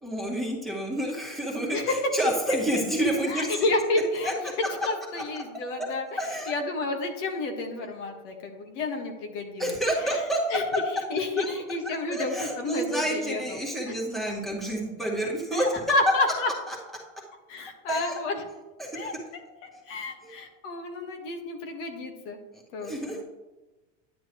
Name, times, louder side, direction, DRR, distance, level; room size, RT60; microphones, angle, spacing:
voice 1, 0.0-3.6 4.2-4.3 6.2-6.5 9.6-10.4 11.4-11.6 12.1-15.6 16.7-16.8 17.9-18.2 18.8-19.2 20.2-20.3 22.5-23.2, right 1 dB, ahead, -3 dB, 1.8 m, -29 dB
voice 2, 1.7-2.1 3.3-4.5 4.8-6.1 6.5-9.7 10.0-10.2 10.5-10.6 11.1-13.6 15.5-16.5 17.5-18.4 18.9-19.1 19.9-22.4 22.7-23.2, left 2 dB, 70° left, 3 dB, 1.7 m, -30 dB
10.5 x 8.8 x 3.1 m, 1.1 s
supercardioid pair, 130°, 39 cm